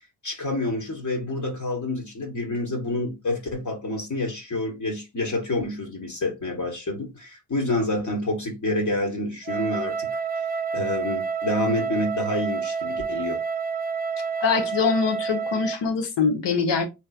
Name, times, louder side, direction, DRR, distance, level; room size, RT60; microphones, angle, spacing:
voice 1, 0.2-10.1 10.7-13.4, left 1 dB, 40° left, 1.3 m, -28 dB
Wind instrument woodwind instrument, 9.4-15.9, right 5 dB, 25° right, 0.3 m, -29 dB
voice 2, 14.4-16.9, left 6 dB, 70° left, 1.0 m, -23 dB
3.1 x 3.0 x 2.4 m
supercardioid pair, 45°, 43 cm